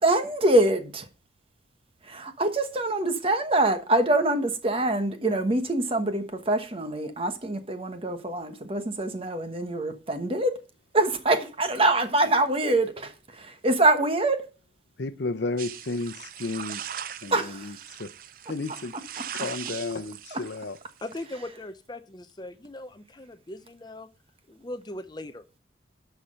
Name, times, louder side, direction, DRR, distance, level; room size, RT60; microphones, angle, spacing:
voice 1, 0.0-1.1 2.0-10.6 10.9-14.5 17.3-17.8 20.3-20.4, right 2 dB, 30° right, 1.2 m, -25 dB
voice 2, 15.0-16.9 17.2-18.1 18.5-18.9 19.3-20.8, left 3 dB, 70° left, 0.7 m, -32 dB
sound 1, 15.6-21.3, right 9 dB, 50° right, 0.5 m, -40 dB
voice 3, 21.0-24.1 24.5-25.4, left 1 dB, 25° left, 0.6 m, -39 dB
11.5 x 5.9 x 5.6 m
head